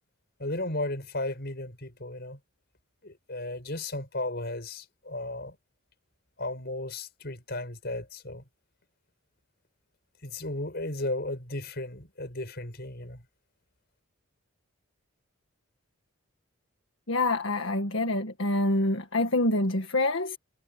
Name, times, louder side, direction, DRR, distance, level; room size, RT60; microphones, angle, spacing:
voice 1, 0.4-2.4 3.0-5.6 6.4-8.4 10.2-13.2, left 2 dB, 50° left, 5.8 m, -35 dB
voice 2, 17.1-20.4, left 2 dB, 65° left, 1.8 m, -26 dB
head